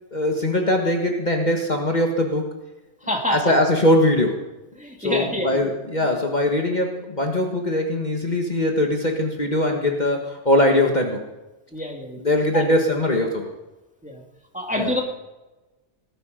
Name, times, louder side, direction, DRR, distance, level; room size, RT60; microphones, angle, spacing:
voice 1, 0.1-2.5 3.3-4.4 5.0-11.2 12.2-13.5 14.8-14.9, left 1 dB, 40° left, 2 dB, 1.6 m, -21 dB
voice 2, 3.0-3.5 4.8-5.7 6.0-6.1 11.7-12.2 12.5-12.6 14.0-14.2 14.5-15.0, left 1 dB, 5° right, 0 dB, 2.4 m, -27 dB
19.0 x 12.0 x 5.1 m, 1.1 s
omnidirectional pair, 1.2 m